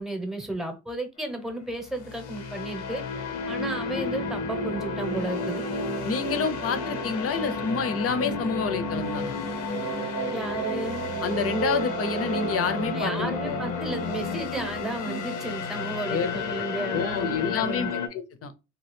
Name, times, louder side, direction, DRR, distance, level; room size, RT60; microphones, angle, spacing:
voice 1, 0.0-3.0 3.5-5.6 10.3-11.0 12.9-17.9, right 1 dB, ahead, 0.8 m, -33 dB
sound 1, 1.8-18.1, left 5 dB, 85° left, 0.7 m, -32 dB
sound 2, 4.5-9.3 9.7-14.2, right 10 dB, 75° right, 0.5 m, -36 dB
voice 2, 6.0-9.4 11.2-13.6 16.1-16.4 16.9-18.5, left 5 dB, 50° left, 0.6 m, -28 dB
sound 3, 9.1-15.2, right 4 dB, 30° right, 0.6 m, -41 dB
2.8 x 2.4 x 3.3 m
cardioid pair, 90°, 30 cm